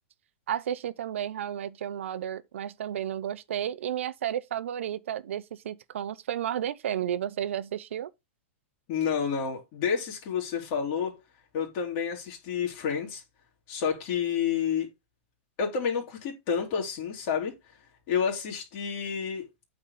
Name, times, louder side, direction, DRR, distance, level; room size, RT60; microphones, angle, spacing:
voice 1, 0.5-8.1, right 10 dB, 80° right, 0.7 m, -32 dB
voice 2, 8.9-11.1 11.5-13.2 13.7-14.9 15.6-17.5 18.1-19.5, left 7 dB, 35° left, 2.7 m, -29 dB
8.4 x 4.3 x 5.4 m
supercardioid pair, 170°, 7 cm